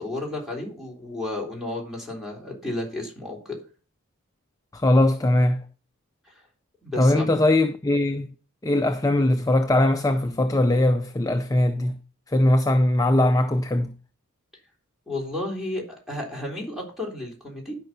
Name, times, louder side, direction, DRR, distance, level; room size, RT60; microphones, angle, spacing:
voice 1, 0.0-3.6 6.3-6.4 6.8-7.4 15.1-17.7, left 2 dB, ahead, 3.5 m, -32 dB
voice 2, 4.7-5.7 7.0-8.3 8.6-12.0 12.3-13.9, left 1 dB, 15° left, 0.4 m, -20 dB
12.0 x 5.4 x 6.0 m
head